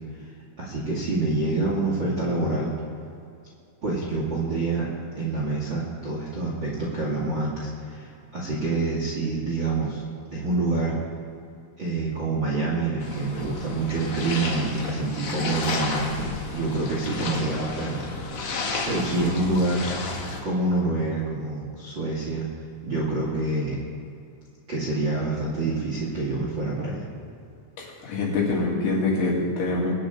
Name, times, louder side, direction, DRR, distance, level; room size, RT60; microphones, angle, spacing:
voice 1, 0.6-2.7 3.8-4.9 5.2-10.0 10.3-11.0 11.8-18.0 18.8-20.1 20.4-22.5 22.8-23.8 24.7-27.1, right 2 dB, 45° right, -5 dB, 1.5 m, -27 dB
sound 1, 13.0-20.4, left 3 dB, 90° left, 1.4 m, -32 dB
voice 2, 28.0-29.9, left 3 dB, 70° left, -3 dB, 4.8 m, -24 dB
23.0 x 9.9 x 3.8 m, 2.5 s
omnidirectional pair, 5.7 m